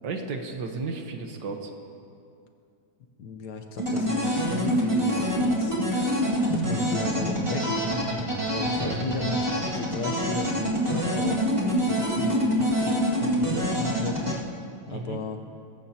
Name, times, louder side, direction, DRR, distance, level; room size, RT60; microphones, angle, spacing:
voice 1, 0.0-1.7 8.8-9.0 14.9-15.2, right 4 dB, 65° right, 4 dB, 1.7 m, -33 dB
voice 2, 3.2-5.8 6.5-8.0 8.5-11.4 11.8-14.4 14.9-15.4, left 4 dB, 60° left, 5 dB, 1.4 m, -35 dB
sound 1, 3.8-14.3, equal, 15° right, 2.0 m, -26 dB
21.0 x 15.5 x 2.9 m, 2.4 s
omnidirectional pair, 2.1 m